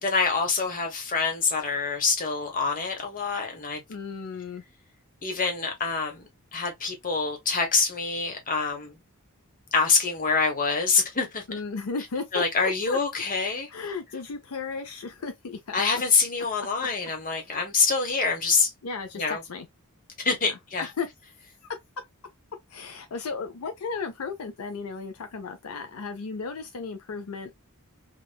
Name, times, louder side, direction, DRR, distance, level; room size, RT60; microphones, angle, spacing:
voice 1, 0.0-3.8 5.2-6.2 6.5-9.0 9.7-11.4 12.3-13.7 15.7-18.7 19.1-19.4 20.2-20.9, left 4 dB, 40° left, 1.2 m, -25 dB
voice 2, 3.9-4.6 11.5-13.0 13.7-15.8 16.6-16.9 17.4-17.6 18.8-19.7 20.4-21.1 22.7-27.6, left 4 dB, 75° left, 0.6 m, -35 dB
3.6 x 2.4 x 2.2 m
head